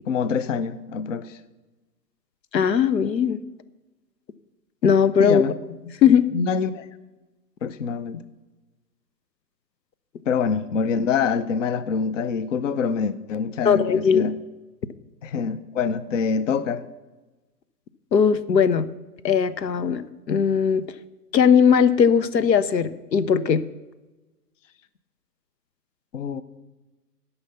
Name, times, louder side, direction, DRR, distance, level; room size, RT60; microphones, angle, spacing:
voice 1, 0.1-1.4 5.2-5.5 5.8-5.9 6.3-6.9 7.6-8.2 10.3-14.4 15.2-16.8 26.1-26.4, left 6 dB, 50° left, 16 dB, 0.6 m, -25 dB
voice 2, 2.5-3.4 4.8-5.4 6.0-6.3 13.6-14.3 18.1-18.9 19.2-20.9 21.3-23.6, left 7 dB, 85° left, 16 dB, 0.8 m, -19 dB
12.5 x 5.7 x 6.8 m, 1.1 s
hypercardioid pair, 135°, 49 cm